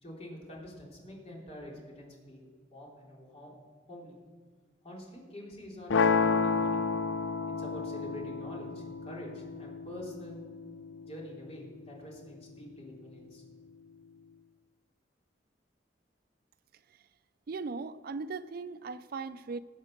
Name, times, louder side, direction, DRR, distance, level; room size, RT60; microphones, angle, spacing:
voice 1, 0.0-3.5 3.9-4.2 4.8-6.8 7.6-10.4 11.0-13.4, left 1 dB, 35° left, -3 dB, 3.6 m, -46 dB
sound 1, 5.9-11.9, left 5 dB, 85° left, 0.5 m, -31 dB
voice 2, 17.5-19.6, right 4 dB, 55° right, 14 dB, 0.4 m, -38 dB
19.5 x 7.3 x 6.6 m, 1.5 s
head